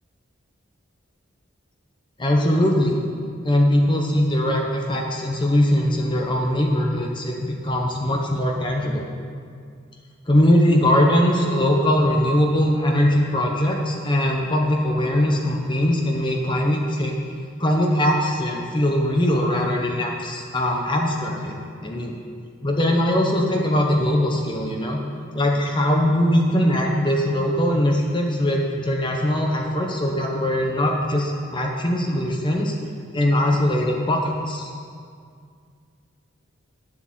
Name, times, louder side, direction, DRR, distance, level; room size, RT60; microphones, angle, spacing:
voice 1, 2.2-3.0 3.4-9.1 10.3-17.1 17.6-21.6 21.8-22.2 22.6-25.0 25.3-32.7 33.1-34.7, left 1 dB, 25° left, 0 dB, 1.0 m, -21 dB
10.0 x 7.8 x 7.6 m, 2.2 s
head